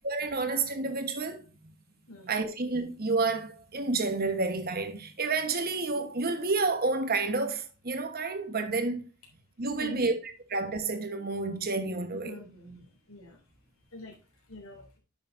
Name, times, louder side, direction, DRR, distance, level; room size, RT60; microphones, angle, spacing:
voice 1, 0.0-1.4 2.3-9.0 9.6-12.4, right 3 dB, 45° right, 1.3 m, -30 dB
voice 2, 9.8-10.1 12.1-13.4 13.9-14.2 14.5-15.0, left 2 dB, 80° left, 3.3 m, -45 dB
10.5 x 7.0 x 2.7 m
head